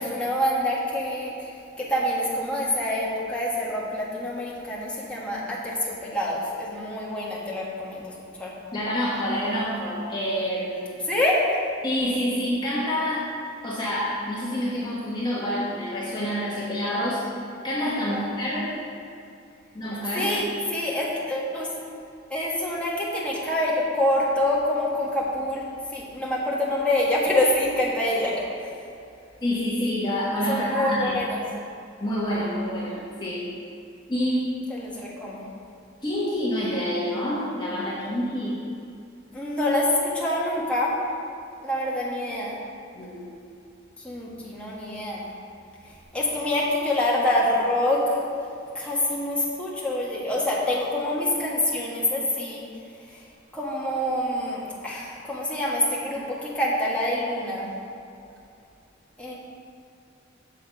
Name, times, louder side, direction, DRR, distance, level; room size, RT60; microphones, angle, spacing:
voice 1, 0.0-1.5 1.8-8.1 8.4-8.5 11.0-11.6 18.1-18.2 20.1-21.7 22.3-25.6 25.9-28.3 28.6-28.7 30.5-31.4 34.7-35.4 39.3-40.9 41.6-42.6 44.0-45.2 46.1-48.2 48.7-52.6 53.1-53.2 53.5-57.7 59.2-59.3, left 1 dB, 5° left, -6 dB, 1.5 m, -26 dB
voice 2, 8.7-10.9 11.8-13.3 13.6-17.2 17.6-18.7 19.7-20.3 29.4-31.2 32.0-33.5 34.1-34.4 36.0-38.5 42.9-43.2, equal, 25° left, -7 dB, 1.2 m, -27 dB
6.9 x 6.8 x 5.3 m, 2.6 s
head